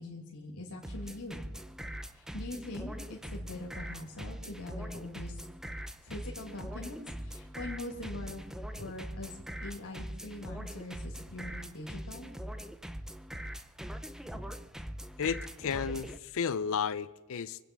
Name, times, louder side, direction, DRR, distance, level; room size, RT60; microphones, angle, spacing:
voice 1, 0.0-1.4 2.1-5.4 6.0-8.4 8.7-12.3 14.3-14.4, left 2 dB, 80° left, 2.4 m, -43 dB
sound 1, 0.8-16.2, equal, ahead, 0.6 m, -42 dB
voice 2, 15.2-17.6, left 6 dB, 65° left, 0.5 m, -33 dB
25.0 x 8.6 x 5.9 m
head